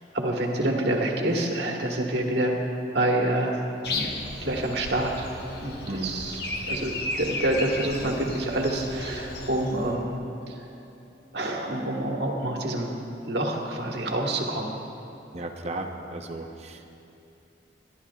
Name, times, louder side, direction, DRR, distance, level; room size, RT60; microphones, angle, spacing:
voice 1, 0.1-2.5 2.9-3.5 3.9-4.1 4.4-5.3 5.6-6.4 6.7-10.1 10.5-10.6 11.3-12.9 13.3-14.7, right 1 dB, 70° right, 0 dB, 1.4 m, -27 dB
Breathing, 3.8-9.9, left 2 dB, 60° left, 1.0 m, -34 dB
voice 2, 5.9-6.2 15.3-16.9, right 2 dB, 35° right, 4 dB, 0.7 m, -35 dB
23.0 x 11.5 x 2.4 m, 2.8 s
head